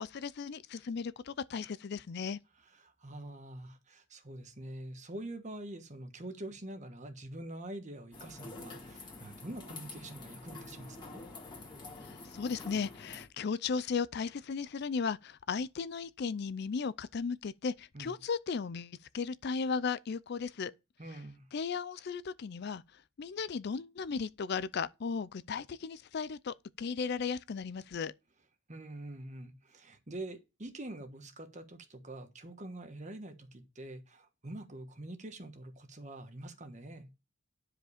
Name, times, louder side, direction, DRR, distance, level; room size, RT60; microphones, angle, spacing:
voice 1, 0.0-2.4 12.0-20.7 21.5-22.8 23.2-28.1, left 5 dB, 50° left, 0.4 m, -36 dB
voice 2, 2.6-11.2 17.9-18.2 21.0-21.5 28.7-37.1, right 1 dB, 35° right, 1.3 m, -45 dB
sound 1, 8.1-13.3, left 3 dB, 20° left, 2.1 m, -48 dB
10.5 x 5.0 x 5.0 m
head